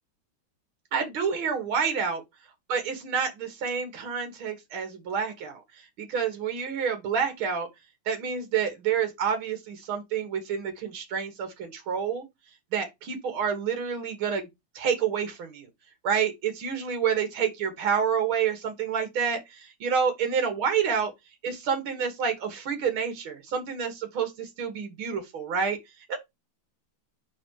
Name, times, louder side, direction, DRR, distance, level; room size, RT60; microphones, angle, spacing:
voice 1, 0.9-2.2 2.7-5.6 6.0-7.7 8.1-12.3 12.7-14.5 14.8-15.7 16.0-21.1 21.4-25.8 26.1-26.2, right 7 dB, 80° right, 2.3 m, -28 dB
5.4 x 4.2 x 4.5 m
omnidirectional pair, 2.2 m